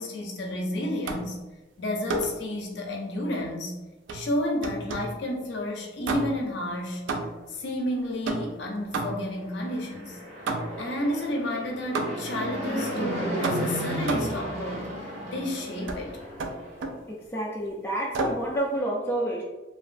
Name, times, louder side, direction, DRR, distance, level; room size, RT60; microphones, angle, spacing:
voice 1, 0.0-1.4 1.8-3.8 4.1-7.1 7.5-10.2 10.8-14.9 15.2-16.1, left 1 dB, 60° left, 0 dB, 0.6 m, -31 dB
sound 1, 1.0-1.4 2.1-2.5 4.1-5.2 6.0-6.6 7.1-7.5 8.2-9.4 10.5-10.9 11.9-12.4 13.4-14.4 15.9-16.0 16.4-17.0 18.1-18.5, right 3 dB, 70° right, 0.3 m, -31 dB
Fixed-wing aircraft airplane, 9.4-16.8, equal, 35° right, 0.7 m, -34 dB
voice 2, 17.1-19.4, right 1 dB, 10° left, -4 dB, 0.3 m, -29 dB
3.0 x 2.4 x 2.4 m, 1.1 s
head